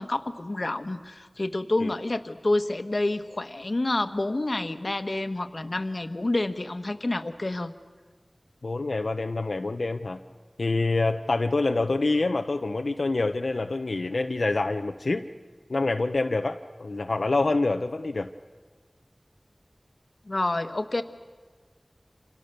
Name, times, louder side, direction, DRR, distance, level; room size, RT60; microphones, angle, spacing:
voice 1, 0.0-7.7 20.3-21.0, left 2 dB, 55° left, 9 dB, 1.3 m, -28 dB
voice 2, 8.6-10.2 10.6-15.2 15.7-18.3, left 3 dB, 90° left, 6 dB, 0.8 m, -26 dB
28.0 x 27.0 x 6.8 m, 1.4 s
wide cardioid pair, 55°, 0 cm